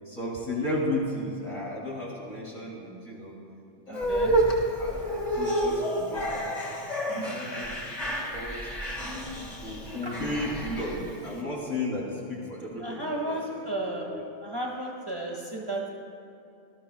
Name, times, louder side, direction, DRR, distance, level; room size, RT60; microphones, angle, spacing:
voice 1, 0.1-3.3 3.9-8.0 8.3-8.8 9.6-14.2, left 1 dB, 80° left, -6 dB, 3.7 m, -34 dB
sound 1, 3.9-11.3, right 1 dB, 35° left, 1.9 m, -29 dB
voice 2, 3.9-4.3 10.0-10.1 12.8-14.1 14.4-15.9, right 1 dB, 25° right, -3 dB, 1.3 m, -33 dB
19.5 x 13.0 x 2.3 m, 2.6 s
omnidirectional pair, 1.1 m